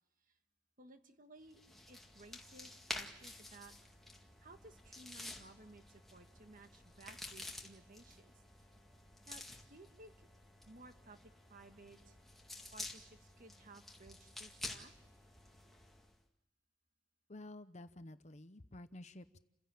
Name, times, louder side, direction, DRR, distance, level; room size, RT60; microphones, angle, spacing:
voice 1, 0.8-1.6 1.9-3.7 4.4-8.7 9.3-9.4 9.7-10.3 10.6-12.2 12.7-14.9, right 2 dB, 40° right, 7 dB, 1.5 m, -58 dB
sound 1, 1.5-16.1, left 2 dB, ahead, 2.0 m, -51 dB
voice 2, 17.3-19.4, left 1 dB, 35° left, 11 dB, 0.8 m, -51 dB
29.5 x 16.0 x 7.6 m, 0.96 s
head